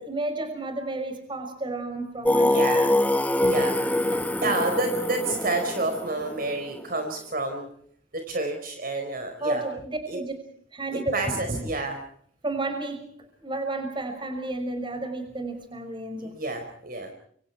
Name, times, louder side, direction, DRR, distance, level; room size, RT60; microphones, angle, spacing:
voice 1, 0.0-4.7 9.4-10.3 10.7-11.1 11.5-11.7 12.4-16.4, right 2 dB, 25° right, 7 dB, 5.9 m, -33 dB
Singing, 2.3-7.0, left 1 dB, 10° left, 1.3 m, -24 dB
voice 2, 2.3-2.9 3.4-3.7 4.4-7.7 8.1-9.6 10.1-10.2 11.1-12.0 16.2-17.1, right 2 dB, 50° right, 5 dB, 4.7 m, -29 dB
28.5 x 25.0 x 4.6 m, 0.62 s
head